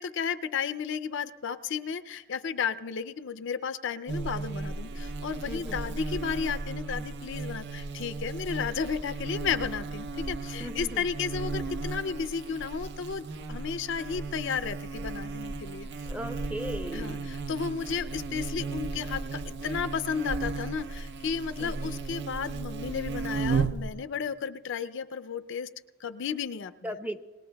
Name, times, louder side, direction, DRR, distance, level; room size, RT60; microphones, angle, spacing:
voice 1, 0.0-15.9 16.9-25.7 26.0-26.7, left 6 dB, 55° left, 10 dB, 0.4 m, -33 dB
Buzz, 4.1-23.9, right 3 dB, 50° right, 0.5 m, -35 dB
voice 2, 10.6-11.0 16.1-17.3 21.6-21.7 26.8-27.2, equal, 5° right, 7 dB, 0.6 m, -37 dB
27.0 x 20.5 x 2.3 m, 1.3 s
head